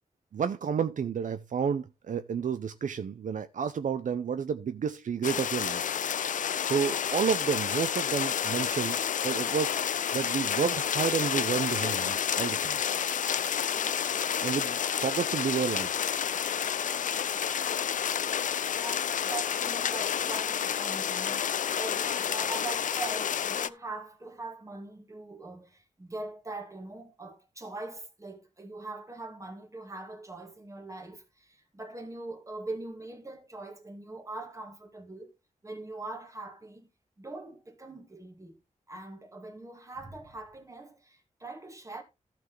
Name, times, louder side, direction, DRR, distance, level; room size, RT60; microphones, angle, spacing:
voice 1, 0.3-5.8 6.6-9.0 9.2-9.8 10.1-12.8 14.4-15.9, right 7 dB, 70° right, 0.6 m, -30 dB
sound 1, 5.2-23.7, left 8 dB, 75° left, 0.4 m, -30 dB
voice 2, 13.7-14.0 16.7-17.2 18.8-35.3 35.6-36.9 37.2-38.6 38.9-42.0, right 2 dB, 25° right, 2.1 m, -42 dB
14.5 x 6.0 x 3.2 m
wide cardioid pair, 140°, 13 cm